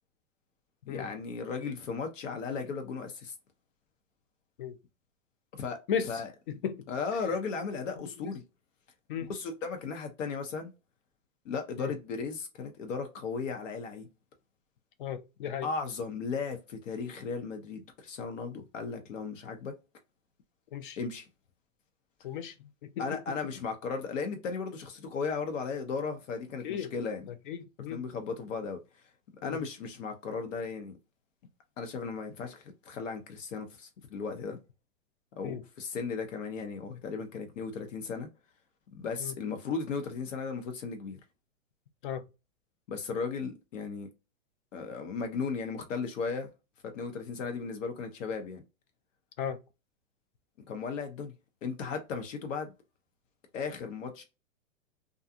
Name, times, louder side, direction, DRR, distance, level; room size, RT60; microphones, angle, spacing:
voice 1, 0.9-3.3 5.5-5.8 6.0-6.3 6.9-8.4 9.3-10.7 11.4-14.1 15.6-19.7 21.0-21.3 23.0-27.3 27.9-28.8 29.4-30.9 31.8-34.6 35.4-38.3 38.9-41.2 42.9-44.1 44.7-46.5 46.9-48.6 50.7-51.3 51.6-52.7 53.5-54.2, left 5 dB, 70° left, 0.8 m, -36 dB
voice 2, 6.5-6.9 8.2-8.3 9.1-9.3 11.8-11.9 15.0-15.7 20.7-21.0 22.2-22.5 22.8-23.2 26.6-26.9 27.5-28.0 29.4-29.6 35.4-35.6 39.2-39.3 42.0-42.2 49.4-49.6, left 8 dB, 40° left, 0.4 m, -35 dB
2.5 x 2.3 x 2.6 m
hypercardioid pair, 150°, 39 cm